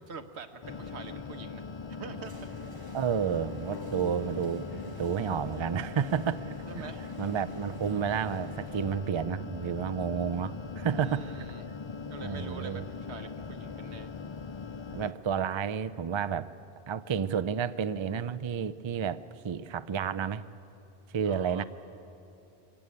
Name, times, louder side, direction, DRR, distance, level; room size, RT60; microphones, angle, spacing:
voice 1, 0.0-1.6 2.0-2.5 6.7-7.1 11.0-11.7 12.1-14.1 21.2-21.6, right 4 dB, 75° right, 7 dB, 1.5 m, -45 dB
sound 1, 0.6-15.1, left 5 dB, 40° left, 0.4 m, -41 dB
sound 2, 2.2-9.1, right 2 dB, 20° right, 0.9 m, -52 dB
voice 2, 2.9-6.8 7.2-11.5 12.2-12.8 14.9-16.5 16.9-20.4 21.1-21.6, right 7 dB, 45° right, 13 dB, 0.4 m, -31 dB
sound 3, 3.7-6.9, left 6 dB, 80° left, 1.1 m, -47 dB
24.0 x 15.5 x 9.6 m, 2.8 s
omnidirectional pair, 1.1 m